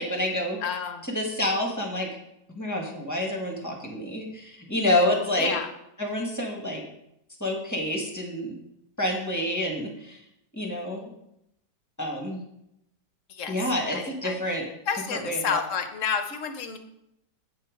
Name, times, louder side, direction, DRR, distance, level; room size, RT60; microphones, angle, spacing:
voice 1, 0.0-0.6 1.0-2.1 2.5-5.5 6.0-6.8 7.4-8.5 9.0-10.2 10.5-11.1 12.0-12.4 13.5-14.7 15.1-15.6, left 1 dB, 10° left, 0 dB, 1.4 m, -28 dB
voice 2, 0.6-1.0 5.4-5.7 13.3-13.5 13.9-14.3 14.9-16.8, left 6 dB, 55° left, 8 dB, 1.0 m, -30 dB
8.1 x 5.6 x 5.2 m, 0.80 s
omnidirectional pair, 1.9 m